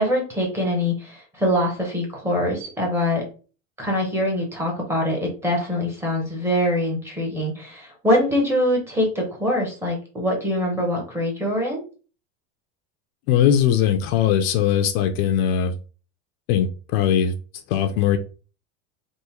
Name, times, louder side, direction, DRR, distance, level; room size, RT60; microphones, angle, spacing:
voice 1, 0.0-3.2 3.8-11.8, left 1 dB, 5° right, 0.6 m, -23 dB
voice 2, 13.3-15.7 16.5-17.3 17.7-18.2, left 9 dB, 55° left, 0.5 m, -20 dB
3.6 x 2.5 x 2.9 m
cardioid pair, 170°, 37 cm